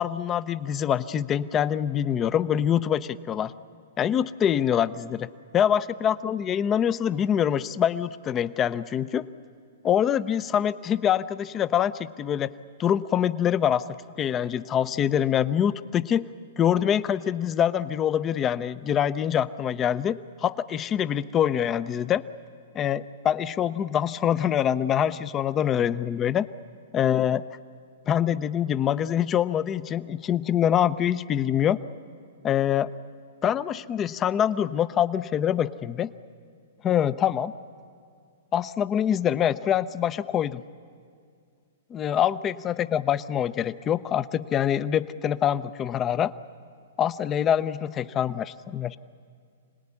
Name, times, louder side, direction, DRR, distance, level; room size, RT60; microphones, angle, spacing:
voice 1, 0.0-3.5 4.0-9.2 9.8-12.5 12.8-16.2 16.6-22.2 22.7-26.5 26.9-27.4 28.1-31.8 32.4-32.9 33.4-36.1 36.8-37.5 38.5-40.6 41.9-46.3 47.0-49.0, left 9 dB, 25° left, 15 dB, 0.7 m, -25 dB
26.0 x 19.0 x 9.7 m, 2.2 s
hypercardioid pair, 130°, 0 cm